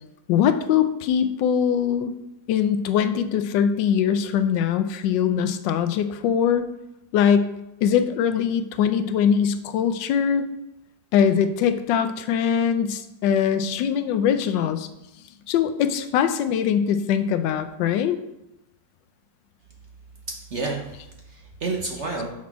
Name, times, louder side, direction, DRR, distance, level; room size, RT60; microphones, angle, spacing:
voice 1, 0.3-2.1 2.5-6.6 7.1-7.5 7.8-10.4 11.1-14.9 15.5-18.2, left 8 dB, 80° left, 10 dB, 1.2 m, -22 dB
voice 2, 20.3-22.3, right 3 dB, 50° right, 0 dB, 0.9 m, -30 dB
5.9 x 4.2 x 6.0 m, 0.90 s
omnidirectional pair, 2.0 m